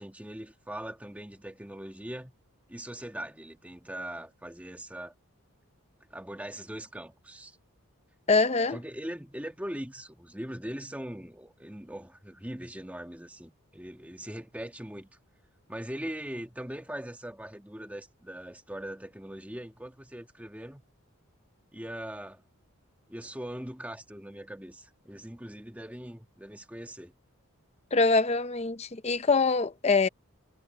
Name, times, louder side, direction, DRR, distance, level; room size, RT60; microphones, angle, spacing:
voice 1, 0.0-2.3 2.7-5.1 6.1-7.6 8.7-15.2 15.7-20.8 21.7-22.4 23.1-27.1, right 1 dB, 5° right, 1.6 m, -41 dB
voice 2, 8.3-8.8 27.9-30.1, left 3 dB, 30° left, 0.6 m, -24 dB
head